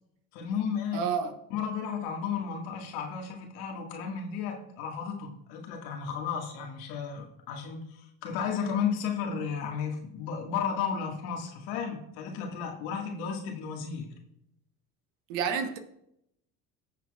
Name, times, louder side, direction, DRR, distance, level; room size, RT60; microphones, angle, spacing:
voice 1, 0.3-1.0 1.5-14.1, left 6 dB, 75° left, 1.9 m, -33 dB
voice 2, 0.9-1.4 15.3-15.8, right 6 dB, 70° right, 1.3 m, -29 dB
18.0 x 6.9 x 2.4 m
hypercardioid pair, 75°, 42 cm